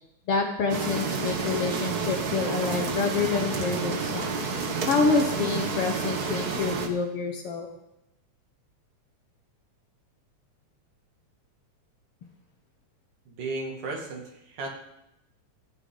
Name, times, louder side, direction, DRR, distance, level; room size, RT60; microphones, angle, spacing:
voice 1, 0.3-4.4 4.9-7.7, left 4 dB, 55° left, 4 dB, 1.8 m, -27 dB
sound 1, 0.7-6.9, right 4 dB, 60° right, 1.0 m, -30 dB
voice 2, 13.3-14.7, right 3 dB, 85° right, 0 dB, 4.0 m, -34 dB
26.0 x 9.0 x 4.0 m, 0.86 s
omnidirectional pair, 3.5 m